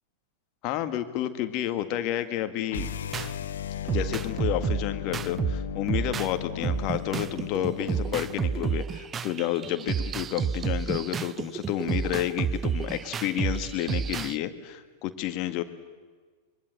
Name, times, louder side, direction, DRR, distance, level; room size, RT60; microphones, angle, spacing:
voice 1, 0.6-2.9 3.8-15.6, left 12 dB, 40° left, 9 dB, 1.9 m, -30 dB
sound 1, 2.7-8.9, left 10 dB, 60° left, 1.2 m, -36 dB
sound 2, 2.8-3.3 3.9-6.3 6.6-14.4, right 7 dB, 20° right, 0.7 m, -30 dB
25.5 x 23.5 x 8.0 m, 1.4 s
figure-of-eight pair, 95°, 0 cm